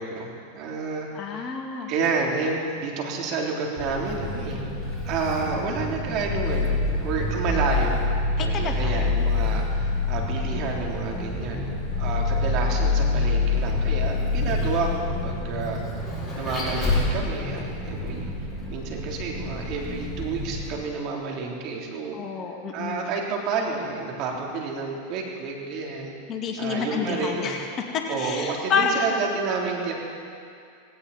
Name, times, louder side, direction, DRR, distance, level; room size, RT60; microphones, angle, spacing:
voice 1, 0.0-1.5 1.9-4.6 5.0-8.0 8.4-15.8 16.3-18.3 18.7-22.2 22.7-26.2 26.6-27.7 28.1-29.9, right 4 dB, 50° right, -1 dB, 3.4 m, -30 dB
voice 2, 1.1-1.9 8.4-9.0 22.1-23.1 26.3-29.0, left 6 dB, 35° left, 1 dB, 2.2 m, -29 dB
Vehicle, 3.8-20.7, left 3 dB, 15° left, 5.3 m, -27 dB
18.5 x 17.0 x 4.3 m, 2.4 s
hypercardioid pair, 110°, 0 cm